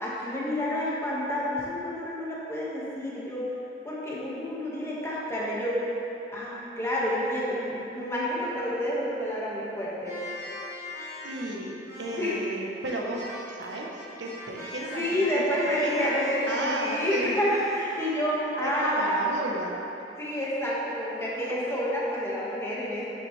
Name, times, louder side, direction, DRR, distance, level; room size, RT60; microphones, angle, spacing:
voice 1, 0.0-3.5 3.8-5.8 6.3-10.2 12.1-12.4 15.0-19.2 20.2-23.1, equal, 15° left, -7 dB, 1.8 m, -29 dB
sound 1, 10.0-18.4, left 1 dB, 20° right, 2.2 m, -40 dB
voice 2, 11.2-13.9 14.2-16.2 16.5-17.4 18.6-19.7 21.4-21.5, right 1 dB, 80° right, -1 dB, 1.1 m, -34 dB
12.5 x 7.5 x 3.4 m, 3.0 s
head